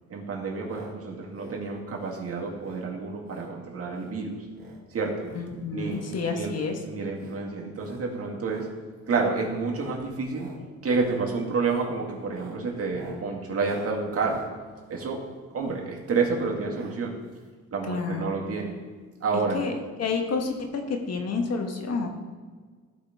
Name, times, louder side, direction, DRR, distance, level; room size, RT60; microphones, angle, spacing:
voice 1, 0.1-4.4 4.9-5.3 5.7-6.5 6.8-8.7 9.1-10.5 10.8-14.4 14.9-15.2 15.5-17.1 17.7-18.7 19.2-19.6, right 4 dB, 50° right, -1 dB, 2.1 m, -29 dB
sound 1, 0.6-0.9 1.2-1.6 1.9-2.2 2.6-2.9 3.2-3.5 3.8-4.2 4.5-4.8 5.2-6.1 6.5-6.7 7.1-7.4 7.7-8.1 8.4-8.7 9.0-9.3 9.7-10.0 10.3-10.6 10.9-11.2 11.6-11.9 12.2-15.9 16.7-17.0 17.2-17.3 17.5-17.6, right 3 dB, 30° right, 3.1 m, -46 dB
voice 2, 5.3-6.8 17.9-18.2 19.3-19.7 20.0-22.1, left 4 dB, 55° left, 3 dB, 1.5 m, -29 dB
15.0 x 5.2 x 3.6 m, 1.5 s
cardioid pair, 90°, 30 cm